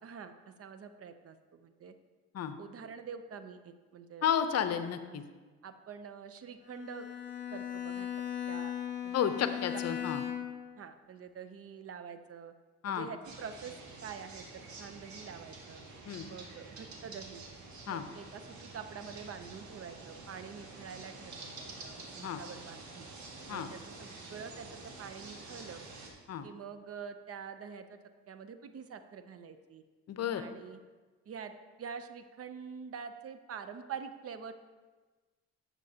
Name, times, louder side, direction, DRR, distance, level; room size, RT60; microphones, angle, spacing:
voice 1, 0.0-1.9 2.6-4.3 5.6-7.1 7.5-8.1 8.5-8.7 9.0-9.3 9.7-10.0 10.8-12.5 12.9-15.8 16.3-17.4 17.9-23.1 23.5-25.8 26.4-28.0 28.3-29.8 30.4-30.8 31.3-31.5 31.8-34.5, right 6 dB, 50° right, 9 dB, 0.6 m, -46 dB
voice 2, 4.2-5.2 9.1-10.2 12.8-13.1 16.1-16.3 17.9-18.0 22.2-22.4 23.5-23.7 26.3-26.5 30.1-30.4, left 8 dB, 55° left, 10 dB, 0.7 m, -32 dB
Bowed string instrument, 6.6-10.7, left 9 dB, 35° left, 1.2 m, -38 dB
sound 1, 13.2-26.1, right 3 dB, 70° right, 1.6 m, -48 dB
10.5 x 7.5 x 2.8 m, 1.3 s
cardioid pair, 90°, 30 cm